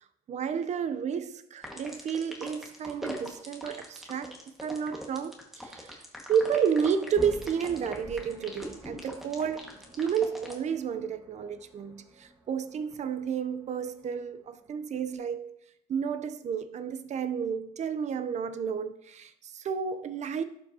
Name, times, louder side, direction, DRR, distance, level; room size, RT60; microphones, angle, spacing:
voice 1, 0.3-6.0 6.3-9.7 10.0-15.6 15.9-20.4, right 7 dB, 45° right, 0.6 m, -31 dB
sound 1, 1.6-10.5, equal, ahead, 1.6 m, -41 dB
sound 2, 7.2-15.2, right 2 dB, 15° right, 1.3 m, -50 dB
11.5 x 5.2 x 2.8 m
cardioid pair, 110°, 17 cm